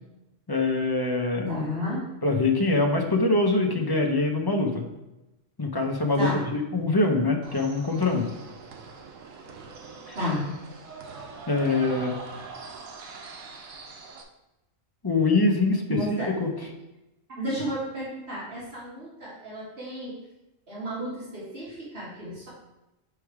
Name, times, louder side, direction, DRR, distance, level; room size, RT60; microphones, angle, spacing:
voice 1, 0.5-1.5 2.2-4.8 5.6-8.3 10.1-10.2 11.5-12.1 15.0-15.8 16.4-16.5, left 3 dB, 25° left, 2 dB, 0.6 m, -24 dB
voice 2, 1.5-2.1 6.1-6.5 10.1-10.5 15.9-16.3 17.3-20.2 20.7-22.5, equal, 50° right, -9 dB, 2.3 m, -32 dB
sound 1, 7.4-14.2, right 4 dB, 85° right, 1.2 m, -43 dB
7.6 x 3.3 x 4.7 m, 0.96 s
omnidirectional pair, 1.3 m